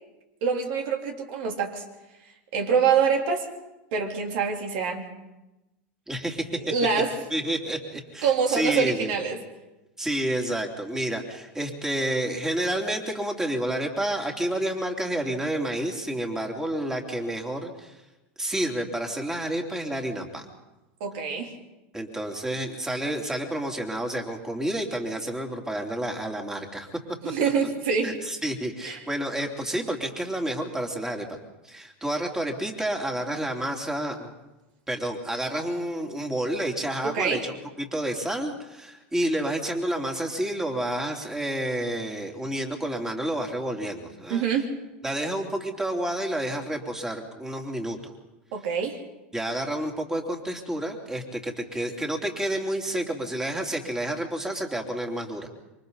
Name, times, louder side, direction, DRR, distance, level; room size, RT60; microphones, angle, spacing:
voice 1, 0.4-1.8 2.5-3.4 3.9-5.1 6.5-7.2 8.2-9.4 21.0-21.5 27.2-28.2 28.8-29.0 37.0-37.5 44.3-44.7 48.5-49.0, right 6 dB, 65° right, 2 dB, 3.4 m, -25 dB
voice 2, 6.1-6.5 7.3-9.1 10.0-18.0 18.4-20.4 21.9-26.9 28.0-31.3 31.6-34.3 34.9-37.4 37.8-44.5 45.0-48.0 49.3-55.5, right 1 dB, 10° right, 2 dB, 3.2 m, -29 dB
27.0 x 24.0 x 4.1 m, 1.0 s
hypercardioid pair, 100°, 6 cm